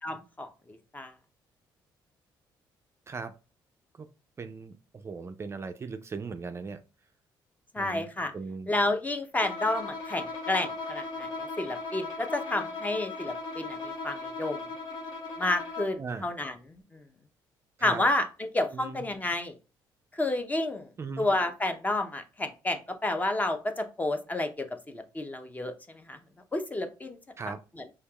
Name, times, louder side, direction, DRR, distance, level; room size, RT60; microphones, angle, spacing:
voice 1, 0.0-0.5 0.9-1.1 7.7-8.3 8.7-11.3 11.6-14.6 15.4-16.6 17.8-19.5 20.1-20.9 21.2-25.7 26.1-26.2 26.5-27.2, left 2 dB, 20° left, 7 dB, 0.6 m, -30 dB
voice 2, 4.4-6.8 7.8-8.1 8.3-8.7 16.0-16.3 17.8-18.0 18.7-19.0 21.0-21.3 27.4-27.6, right 4 dB, 30° right, 9 dB, 0.4 m, -38 dB
Bowed string instrument, 9.4-16.0, left 3 dB, 65° left, 1.0 m, -38 dB
4.5 x 2.9 x 2.3 m, 0.32 s
cardioid pair, 85°, 8 cm